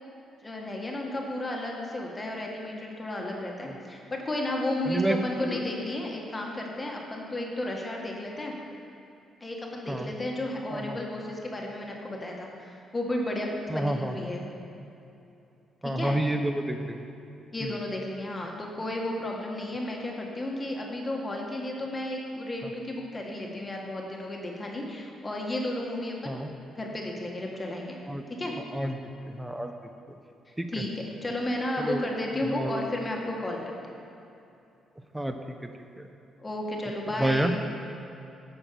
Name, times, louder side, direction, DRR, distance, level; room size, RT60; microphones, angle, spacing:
voice 1, 0.4-8.6 9.4-14.5 15.8-16.2 17.5-26.3 26.8-28.0 28.4-28.6 30.7-34.0 36.4-37.6, left 1 dB, 20° left, -1 dB, 1.7 m, -33 dB
voice 2, 4.9-5.2 5.4-5.6 9.9-10.1 10.7-11.0 13.7-14.1 15.8-17.0 17.6-17.7 22.6-22.7 26.3-26.5 28.1-28.2 28.7-29.0 29.3-29.7 30.6-30.7 31.8-32.0 32.5-32.8 35.1-35.3 37.2-37.5, right 1 dB, 10° right, 6 dB, 0.8 m, -29 dB
9.7 x 6.2 x 6.9 m, 2.8 s
cardioid pair, 95°, 0 cm